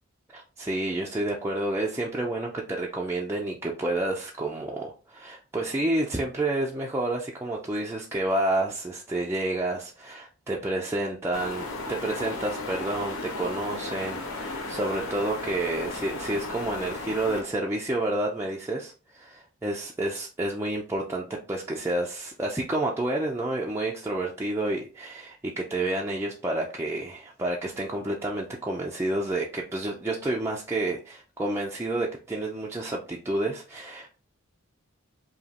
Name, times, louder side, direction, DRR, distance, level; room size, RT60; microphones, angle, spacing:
voice 1, 0.3-34.1, right 2 dB, 10° right, -2 dB, 0.5 m, -29 dB
sound 1, 11.3-17.4, left 3 dB, 70° left, 1.0 m, -35 dB
5.0 x 2.8 x 2.9 m, 0.33 s
head